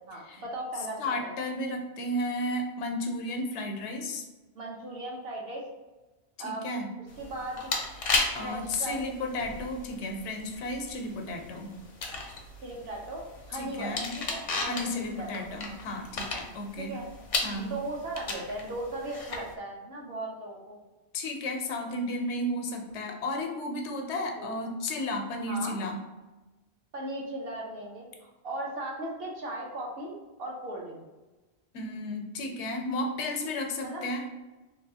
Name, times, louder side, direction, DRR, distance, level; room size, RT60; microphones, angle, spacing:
voice 1, 0.0-1.3 4.5-5.6 6.4-6.7 7.2-7.7 8.4-9.1 12.6-15.5 16.8-17.1 17.6-20.8 24.4-24.5 25.5-25.8 26.9-31.0 33.8-34.1, right 1 dB, 65° right, -1 dB, 0.9 m, -37 dB
voice 2, 1.0-4.2 6.4-6.9 8.3-11.7 13.5-14.1 14.6-16.9 17.4-17.7 21.1-26.0 31.7-34.2, left 1 dB, 90° left, 4 dB, 0.9 m, -33 dB
sound 1, 7.1-19.5, left 3 dB, 55° left, 0.4 m, -36 dB
3.3 x 2.6 x 2.7 m, 1.1 s
omnidirectional pair, 1.1 m